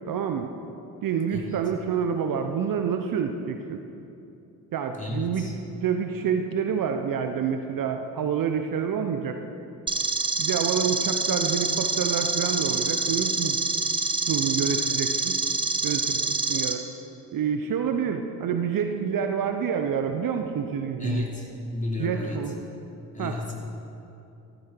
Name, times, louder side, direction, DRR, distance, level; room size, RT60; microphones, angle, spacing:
voice 1, 0.1-0.5 1.0-3.8 4.7-5.5 5.8-9.4 10.4-13.6 14.3-15.4 15.8-16.8 17.3-21.2 22.0-22.6 23.2-23.4, right 7 dB, 45° right, 6 dB, 1.0 m, -28 dB
voice 2, 1.3-1.6 4.9-5.5 21.0-22.6 23.1-23.5, left 2 dB, 15° left, -2 dB, 4.0 m, -32 dB
sound 1, 9.9-16.7, right 3 dB, 10° right, 1.3 m, -26 dB
15.0 x 14.0 x 4.6 m, 2.8 s
hypercardioid pair, 50°, 46 cm